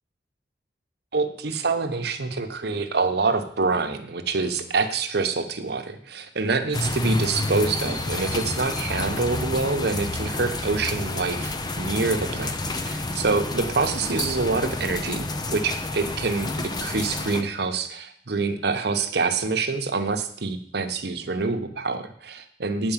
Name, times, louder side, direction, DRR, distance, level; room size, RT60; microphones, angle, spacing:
voice 1, 1.1-12.6 12.8-22.9, right 4 dB, 65° right, 7 dB, 0.9 m, -26 dB
sound 1, 6.7-17.4, left 2 dB, 25° left, 0.6 m, -29 dB
8.9 x 4.6 x 7.3 m, 0.62 s
head